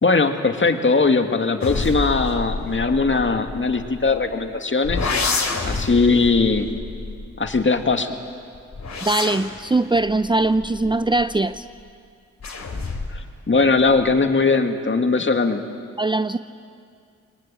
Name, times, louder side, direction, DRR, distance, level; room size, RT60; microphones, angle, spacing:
voice 1, 0.0-5.1 5.7-6.7 7.4-8.1 13.1-15.6, left 4 dB, 40° left, 6 dB, 2.2 m, -20 dB
sound 1, 1.6-4.3 4.8-8.0 8.5-11.6 12.4-13.3 13.6-14.2, left 3 dB, 55° left, 3.3 m, -29 dB
voice 2, 9.0-11.6 16.0-16.4, right 2 dB, 15° right, 12 dB, 0.6 m, -21 dB
22.5 x 20.0 x 8.8 m, 2.4 s
supercardioid pair, 40°, 32 cm